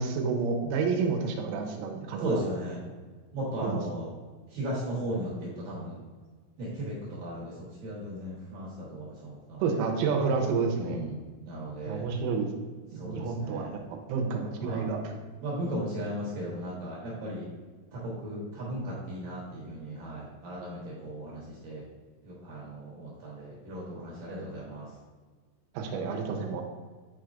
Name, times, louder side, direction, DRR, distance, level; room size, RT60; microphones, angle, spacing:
voice 1, 0.0-2.4 3.6-3.8 9.6-11.1 11.9-12.5 12.9-13.8 14.1-15.0 25.7-26.6, right 5 dB, 90° right, 2 dB, 3.2 m, -29 dB
voice 2, 2.2-2.8 3.3-4.1 4.5-6.0 6.6-7.5 7.8-9.8 10.8-12.0 13.0-13.7 14.6-14.9 15.4-17.5 17.9-21.8 22.2-24.9, right 1 dB, 70° right, -6 dB, 2.2 m, -36 dB
9.2 x 4.5 x 2.5 m, 1.4 s
omnidirectional pair, 5.6 m